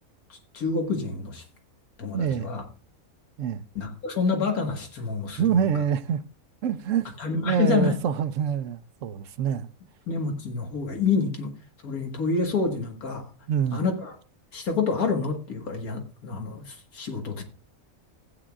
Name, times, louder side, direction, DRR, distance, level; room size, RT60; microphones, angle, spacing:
voice 1, 0.3-1.4 2.0-2.7 3.8-5.6 7.2-8.0 10.1-11.5 11.8-13.3 13.7-14.2 14.5-17.4, left 4 dB, 90° left, 2.1 m, -28 dB
voice 2, 2.1-2.5 3.4-3.6 5.4-6.2 6.6-7.1 7.4-9.7 13.5-13.8, right 8 dB, 65° right, 1.0 m, -26 dB
16.0 x 8.7 x 2.4 m
omnidirectional pair, 1.5 m